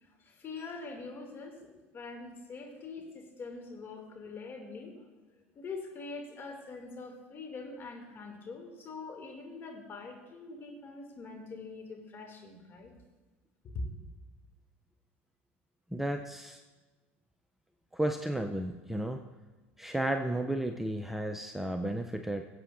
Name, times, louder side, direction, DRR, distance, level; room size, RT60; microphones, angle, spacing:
voice 1, 0.0-5.0 5.6-12.9 13.6-14.0, left 3 dB, 35° left, 2 dB, 2.5 m, -43 dB
voice 2, 15.9-16.6 17.9-19.2 19.8-22.4, right 1 dB, 5° right, 5 dB, 0.5 m, -33 dB
19.0 x 7.9 x 2.6 m, 1.2 s
hypercardioid pair, 85°, 7 cm